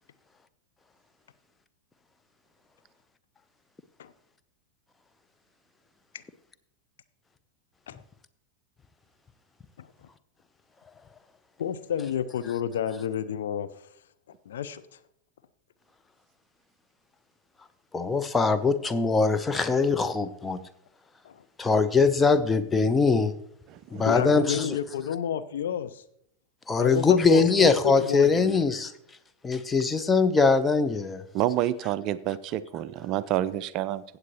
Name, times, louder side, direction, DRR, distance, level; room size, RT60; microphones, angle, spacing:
voice 1, 11.6-13.7 14.5-14.8 21.2-21.4 24.0-26.0 26.8-28.6, left 9 dB, 60° left, 12 dB, 0.5 m, -30 dB
voice 2, 17.9-20.6 21.6-23.3 23.9-24.8 26.7-28.9 29.4-31.2, left 4 dB, 15° left, 11 dB, 0.6 m, -22 dB
voice 3, 23.7-24.3 31.3-34.0, right 12 dB, 40° right, 15 dB, 0.4 m, -29 dB
15.5 x 7.9 x 3.0 m, 0.72 s
figure-of-eight pair, 90°, 0 cm